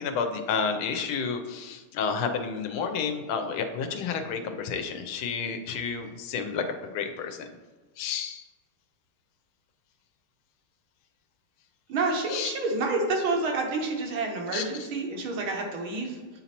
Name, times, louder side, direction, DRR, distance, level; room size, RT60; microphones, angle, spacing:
voice 1, 0.0-6.6 6.9-7.5 8.0-8.4 12.3-12.5 14.5-14.6, left 6 dB, 90° left, 6 dB, 1.5 m, -30 dB
voice 2, 11.9-16.2, right 3 dB, 75° right, 0 dB, 1.9 m, -28 dB
8.6 x 4.1 x 2.9 m, 1.3 s
omnidirectional pair, 2.3 m